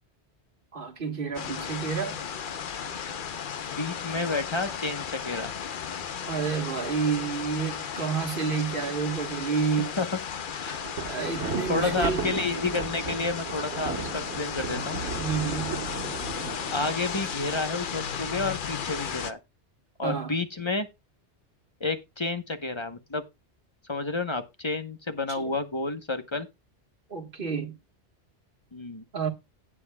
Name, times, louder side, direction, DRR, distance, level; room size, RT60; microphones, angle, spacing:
voice 1, 0.7-2.2 6.2-9.9 11.0-12.3 15.1-15.8 20.0-20.3 25.3-25.5 27.1-27.7 29.1-29.3, right 6 dB, 50° right, 1.6 m, -29 dB
sound 1, 1.3-19.3, left 7 dB, 55° left, 0.8 m, -35 dB
voice 2, 3.7-5.5 10.0-10.1 10.4-10.8 11.6-15.0 16.7-19.4 20.0-20.9 21.8-23.2 23.9-26.5 28.7-29.0, left 3 dB, 25° left, 0.9 m, -30 dB
Thunder, 10.7-17.9, right 4 dB, 85° right, 1.9 m, -35 dB
17.0 x 7.1 x 2.3 m
omnidirectional pair, 1.1 m